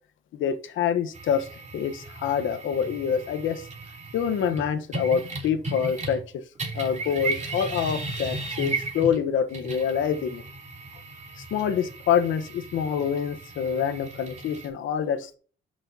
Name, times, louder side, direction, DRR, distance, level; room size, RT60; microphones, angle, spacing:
voice 1, 0.3-1.5 1.7-3.7 4.1-6.4 6.7-10.4 11.5-15.4, left 7 dB, 75° left, 9 dB, 1.2 m, -26 dB
sound 1, 1.1-6.3 6.6-14.7, right 3 dB, 35° right, 3.2 m, -36 dB
10.5 x 6.2 x 2.9 m, 0.37 s
cardioid pair, 90°, 20 cm